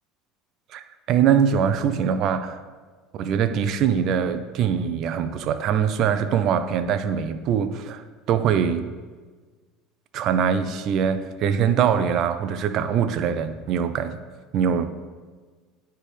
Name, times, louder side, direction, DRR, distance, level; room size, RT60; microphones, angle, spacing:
voice 1, 1.1-2.6 3.1-8.9 10.1-14.2 14.5-14.9, right 8 dB, 55° right, 11 dB, 0.4 m, -23 dB
9.6 x 3.4 x 3.2 m, 1.4 s
hypercardioid pair, 90°, 0 cm